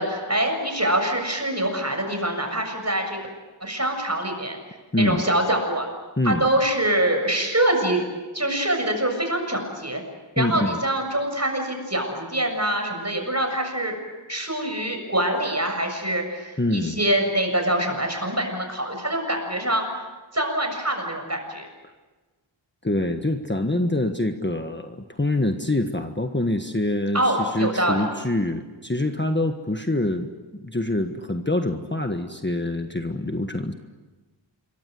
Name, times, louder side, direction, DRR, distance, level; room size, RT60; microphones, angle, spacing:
voice 1, 0.0-3.2 3.6-4.6 5.0-5.9 6.2-8.0 8.3-10.0 10.4-14.0 14.3-19.8 20.3-21.7 27.1-28.0, right 1 dB, 35° right, 4 dB, 7.3 m, -24 dB
voice 2, 10.4-10.8 16.6-17.0 22.8-30.3 30.6-33.7, left 1 dB, 25° left, 6 dB, 1.5 m, -25 dB
27.0 x 24.0 x 7.9 m, 1.2 s
wide cardioid pair, 50°, 47 cm